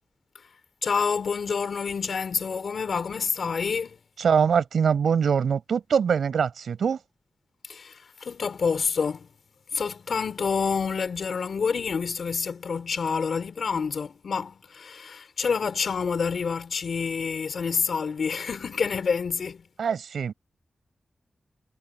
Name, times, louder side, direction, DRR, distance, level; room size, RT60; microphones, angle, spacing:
voice 1, 0.8-4.0 7.7-9.3 9.7-19.7, left 5 dB, 60° left, 3.8 m, -28 dB
voice 2, 4.2-7.0 19.8-20.3, right 7 dB, 85° right, 5.7 m, -23 dB
wide cardioid pair, 145°, 0 cm